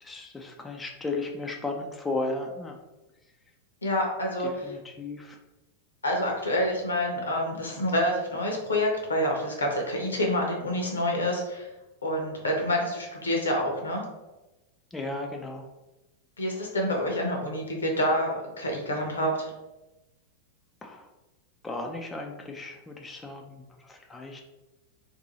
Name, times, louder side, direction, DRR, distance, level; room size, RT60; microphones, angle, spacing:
voice 1, 0.0-2.8 4.4-5.4 14.9-15.7 20.8-21.1 21.6-23.6 23.9-24.4, left 2 dB, 10° left, 2 dB, 0.4 m, -35 dB
voice 2, 3.8-4.7 6.0-11.7 12.0-14.0 16.4-19.5, left 1 dB, 75° left, 1 dB, 0.8 m, -27 dB
2.7 x 2.6 x 3.9 m, 1.0 s
figure-of-eight pair, 90°, 0 cm